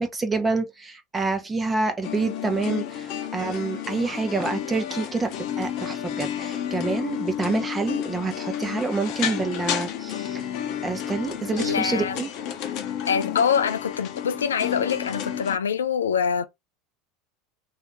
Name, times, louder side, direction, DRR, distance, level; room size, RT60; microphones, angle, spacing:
voice 1, 0.0-5.3 5.6-10.5 10.8-12.3, right 3 dB, 20° right, 1.0 m, -27 dB
sound 1, 2.0-15.6, left 9 dB, 55° left, 0.7 m, -31 dB
voice 2, 11.5-12.2 13.1-16.4, left 7 dB, 90° left, 0.4 m, -24 dB
2.8 x 2.7 x 3.5 m
hypercardioid pair, 85°, 0 cm